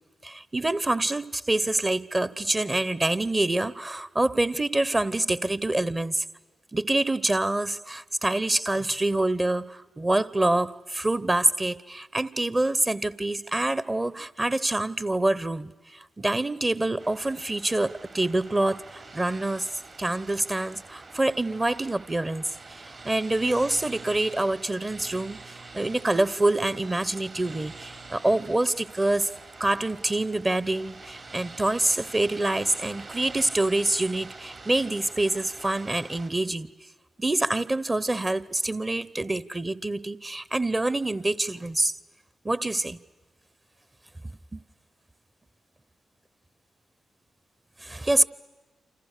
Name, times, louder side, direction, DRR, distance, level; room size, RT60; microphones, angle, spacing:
voice 1, 0.2-6.2 6.7-15.7 16.2-19.7 20.0-22.4 22.7-29.3 29.6-36.7 37.2-41.9 42.4-43.0 44.5-44.6 47.8-48.2, right 2 dB, 25° right, 0.9 m, -26 dB
sound 1, 17.0-36.3, right 3 dB, 55° right, 3.5 m, -46 dB
28.5 x 26.0 x 6.7 m
supercardioid pair, 45°, 0 cm